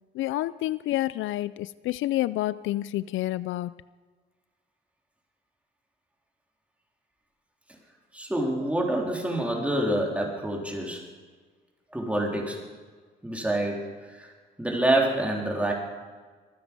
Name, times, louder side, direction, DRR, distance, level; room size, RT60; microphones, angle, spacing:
voice 1, 0.1-3.7, left 15 dB, 80° left, 18 dB, 0.4 m, -29 dB
voice 2, 8.1-11.0 11.9-12.6 13.2-14.3 14.6-15.7, right 1 dB, 5° right, -1 dB, 3.6 m, -27 dB
24.5 x 9.6 x 5.3 m, 1.5 s
cardioid pair, 90°, 20 cm